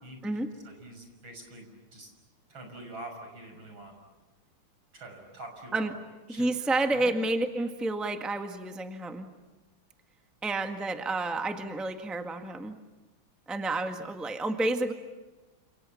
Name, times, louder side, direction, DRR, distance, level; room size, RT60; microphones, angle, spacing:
voice 1, 0.6-2.1 2.5-3.9 4.9-6.0 6.3-7.1, right 1 dB, 65° right, 4 dB, 6.9 m, -45 dB
voice 2, 6.3-9.3 10.4-12.8 13.5-14.9, right 2 dB, ahead, 5 dB, 1.5 m, -30 dB
29.5 x 28.5 x 7.1 m, 1.2 s
omnidirectional pair, 2.3 m